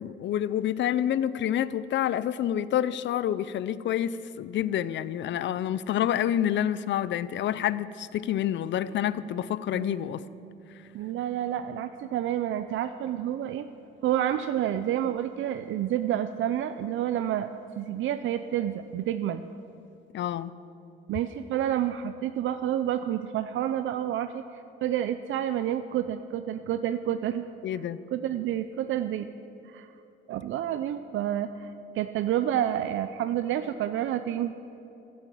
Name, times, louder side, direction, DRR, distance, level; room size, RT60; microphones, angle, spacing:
voice 1, 0.0-10.2 20.1-20.5 27.6-28.0, left 11 dB, 60° left, 0.6 m, -28 dB
sound 1, 9.7-14.7, right 4 dB, 20° left, 3.3 m, -49 dB
voice 2, 10.9-13.7 14.0-17.5 17.8-19.4 21.1-24.4 24.8-27.5 28.1-29.3 29.6-29.9 30.3-34.5, right 11 dB, 70° right, 0.6 m, -29 dB
15.0 x 10.5 x 7.6 m
cardioid pair, 105°, 21 cm